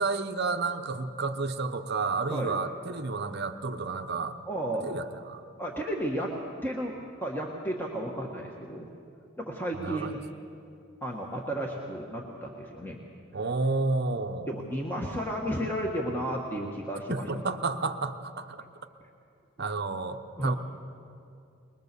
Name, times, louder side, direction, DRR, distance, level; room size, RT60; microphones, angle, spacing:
voice 1, 0.0-4.4 4.8-5.4 9.7-10.1 13.3-14.6 17.1-18.6 19.6-20.6, right 3 dB, 50° right, 7 dB, 0.9 m, -31 dB
voice 2, 4.5-4.9 5.6-6.3 6.6-6.9 7.2-8.9 9.4-10.2 11.0-13.0 14.5-17.2 20.4-20.5, right 1 dB, 10° left, -1 dB, 1.4 m, -33 dB
22.0 x 21.5 x 6.8 m, 2.6 s
head